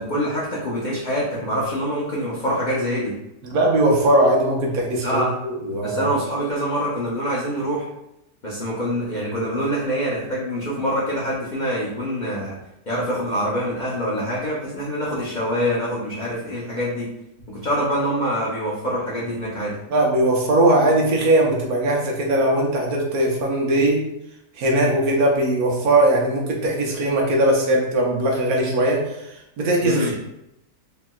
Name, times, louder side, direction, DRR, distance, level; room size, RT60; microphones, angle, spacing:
voice 1, 0.0-3.2 5.0-5.3 5.8-7.9 8.4-12.6 12.9-17.1 17.5-19.8 29.8-30.1, equal, 85° left, -7 dB, 0.4 m, -25 dB
voice 2, 3.4-6.0 19.9-24.0 24.6-29.1 29.6-30.1, right 1 dB, 70° right, -1 dB, 1.1 m, -19 dB
3.1 x 2.8 x 2.2 m, 0.85 s
omnidirectional pair, 1.7 m